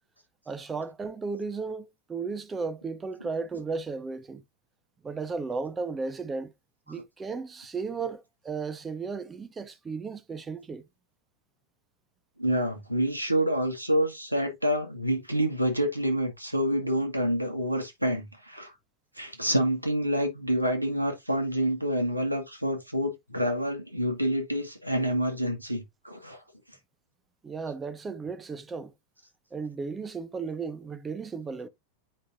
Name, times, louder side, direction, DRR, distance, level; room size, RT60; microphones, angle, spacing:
voice 1, 0.5-4.4 5.0-6.5 6.9-10.9 27.4-28.9 29.5-31.7, right 4 dB, 15° right, 0.8 m, -35 dB
voice 2, 12.4-18.7 19.2-26.4, equal, 90° right, 1.6 m, -27 dB
8.6 x 4.9 x 2.6 m
figure-of-eight pair, 90°, 0 cm